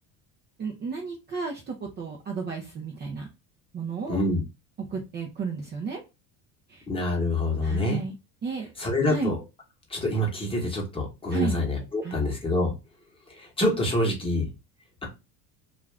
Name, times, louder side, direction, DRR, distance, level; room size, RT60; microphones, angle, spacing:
voice 1, 0.6-3.3 3.7-4.2 4.9-6.0 6.7-6.8 7.6-8.2 8.4-8.7 9.1-9.3 11.3-11.6 12.0-12.2, right 5 dB, 25° right, 0.5 m, -33 dB
voice 2, 4.1-4.4 6.9-8.0 8.8-9.3 9.9-12.7 13.4-14.5, left 1 dB, 15° left, 1.0 m, -26 dB
2.4 x 2.4 x 3.2 m
cardioid pair, 125°, 42 cm